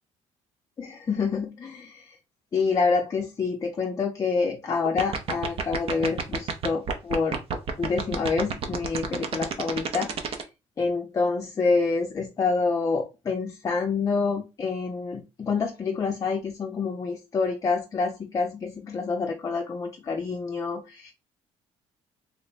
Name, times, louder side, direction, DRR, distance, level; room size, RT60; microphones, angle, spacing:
voice 1, 0.8-2.2 2.5-7.4 7.8-10.5 10.8-21.1, left 4 dB, 30° left, 2 dB, 0.5 m, -27 dB
sound 1, 4.8-10.4, right 6 dB, 50° right, 0.7 m, -28 dB
3.2 x 2.1 x 4.1 m, 0.27 s
cardioid pair, 120°, 12 cm